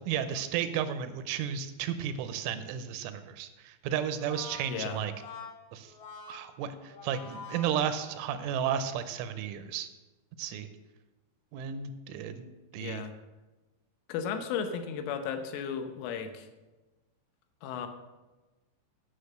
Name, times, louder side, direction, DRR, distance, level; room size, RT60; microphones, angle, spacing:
voice 1, 0.1-5.1 5.7-5.9 6.3-9.9 10.4-10.7 11.5-12.5 12.7-13.0, right 9 dB, 85° right, 10 dB, 3.1 m, -33 dB
Brass instrument, 4.0-8.5, left 4 dB, 65° left, 2.4 m, -46 dB
voice 2, 4.7-5.0 12.8-13.1 14.1-16.5 17.6-17.9, left 7 dB, 85° left, 7 dB, 3.4 m, -35 dB
9.7 x 6.6 x 6.6 m, 1.1 s
omnidirectional pair, 5.6 m